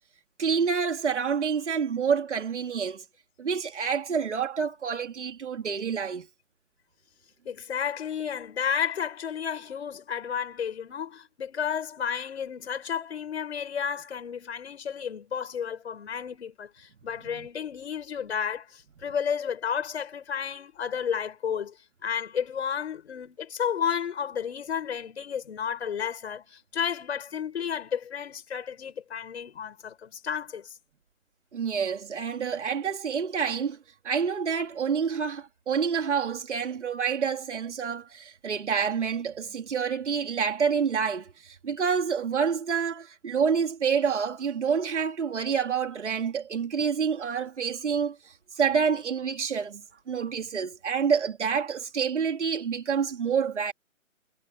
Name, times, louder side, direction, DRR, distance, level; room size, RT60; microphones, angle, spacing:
voice 1, 0.4-3.0 3.4-6.3 17.3-17.5 31.5-33.8 34.0-49.8 50.1-53.7, right 6 dB, 55° right, 3.8 m, -28 dB
voice 2, 7.4-21.8 22.0-30.8, left 7 dB, 50° left, 6.1 m, -32 dB
figure-of-eight pair, 145°, 41 cm